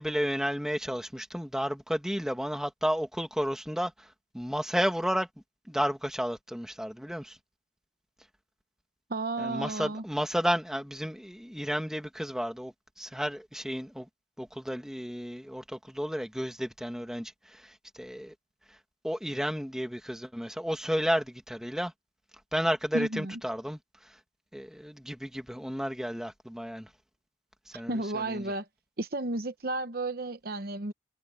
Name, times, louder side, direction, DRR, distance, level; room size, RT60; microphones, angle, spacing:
voice 1, 0.0-5.3 5.7-7.4 9.4-14.1 14.4-18.3 18.7-18.8 19.0-21.9 22.5-24.2 24.5-26.9 27.7-28.5, equal, 5° right, 2.1 m, -32 dB
voice 2, 9.1-10.0 22.9-23.4 27.9-28.7 29.0-30.9, right 2 dB, 55° right, 0.9 m, -32 dB
head